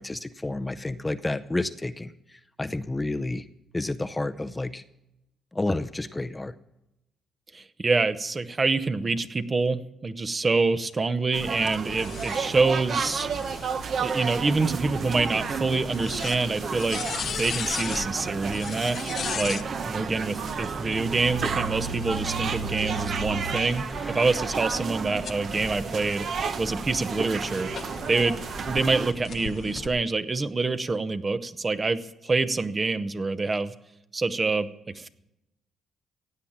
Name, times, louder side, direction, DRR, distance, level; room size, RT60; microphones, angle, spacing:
voice 1, 0.0-3.5 3.7-4.8 5.5-6.5, left 2 dB, 15° left, 10 dB, 0.6 m, -30 dB
voice 2, 7.5-13.3 14.0-19.0 19.3-26.3 26.6-27.7 28.1-28.4 28.7-33.7 34.1-35.1, right 3 dB, 30° right, 12 dB, 0.8 m, -26 dB
sound 1, 11.3-29.1, right 6 dB, 55° right, 0.9 m, -32 dB
sound 2, 11.7-19.7 20.8-23.2 23.8-28.8 29.2-29.9, left 7 dB, 55° left, 0.7 m, -39 dB
sound 3, 14.3-30.0, equal, ahead, 1.0 m, -42 dB
16.5 x 8.7 x 7.2 m, 0.90 s
cardioid pair, 90°, 0 cm